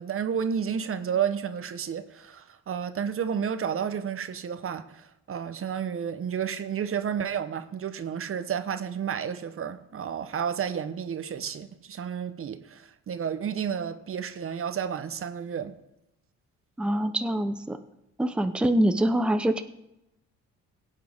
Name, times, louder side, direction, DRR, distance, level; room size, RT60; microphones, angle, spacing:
voice 1, 0.0-15.7, right 7 dB, 45° right, 0.8 m, -31 dB
voice 2, 16.8-17.8 18.2-19.6, right 1 dB, 5° right, 0.7 m, -24 dB
17.0 x 8.6 x 3.5 m
cardioid pair, 90°, 30 cm